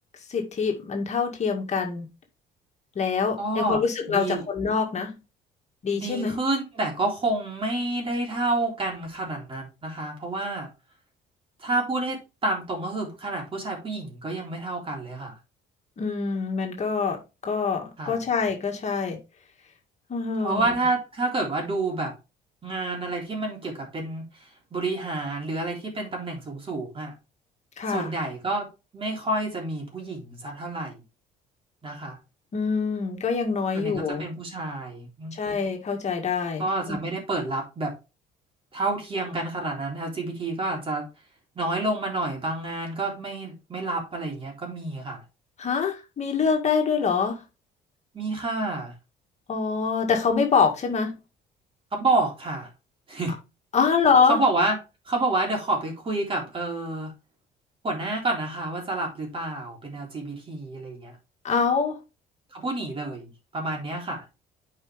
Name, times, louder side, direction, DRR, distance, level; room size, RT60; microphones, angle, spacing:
voice 1, 0.3-2.1 3.0-5.2 5.8-6.4 16.0-19.2 20.1-20.6 27.8-28.1 32.5-34.3 35.3-37.0 45.6-47.4 49.5-51.2 53.7-54.4 61.4-62.0, left 5 dB, 40° left, 1.9 m, -25 dB
voice 2, 3.4-3.8 4.1-4.4 5.9-10.7 11.6-15.3 18.0-18.2 20.4-22.1 22.6-27.1 27.9-31.0 31.8-32.2 33.7-35.4 36.6-37.9 38.7-41.1 41.6-45.2 48.1-48.9 51.9-52.7 53.1-53.4 54.3-54.8 55.1-57.1 57.8-61.2 62.5-64.2, right 2 dB, 30° right, 3.6 m, -29 dB
8.9 x 5.0 x 3.4 m
cardioid pair, 110°, 17 cm